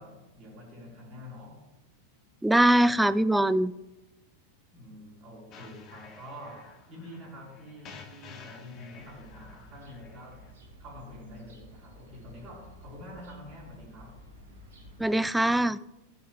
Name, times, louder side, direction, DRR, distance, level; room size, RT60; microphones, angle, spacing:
voice 1, 0.0-1.6 4.7-10.5 10.8-14.2, left 1 dB, 30° right, -4 dB, 3.6 m, -46 dB
voice 2, 2.4-3.7 15.0-15.8, right 1 dB, 5° right, 15 dB, 0.3 m, -22 dB
sound 1, 5.5-10.5, left 6 dB, 30° left, 1.0 m, -51 dB
sound 2, 8.9-15.0, equal, 60° right, 2.7 m, -52 dB
13.0 x 6.9 x 3.5 m, 0.96 s
figure-of-eight pair, 90°, 0 cm